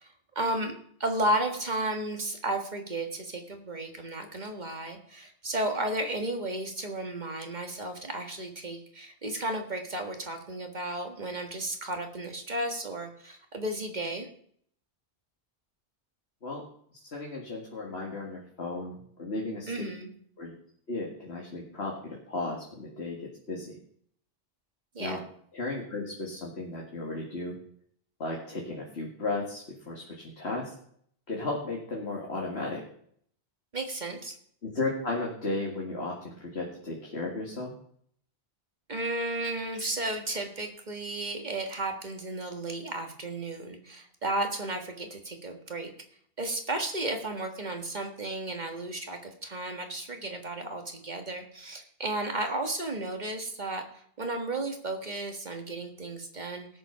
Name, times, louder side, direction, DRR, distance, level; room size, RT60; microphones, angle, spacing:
voice 1, 0.0-0.7 1.0-14.3 19.7-20.1 24.9-25.2 33.7-34.4 38.9-45.9 46.4-56.7, right 1 dB, 45° right, 4 dB, 1.9 m, -33 dB
voice 2, 17.1-19.7 20.4-20.5 20.9-23.8 25.0-25.2 25.5-27.6 28.2-30.8 31.3-32.8 34.6-37.7, left 2 dB, 75° left, -2 dB, 2.4 m, -35 dB
18.0 x 6.9 x 5.8 m, 0.64 s
omnidirectional pair, 1.1 m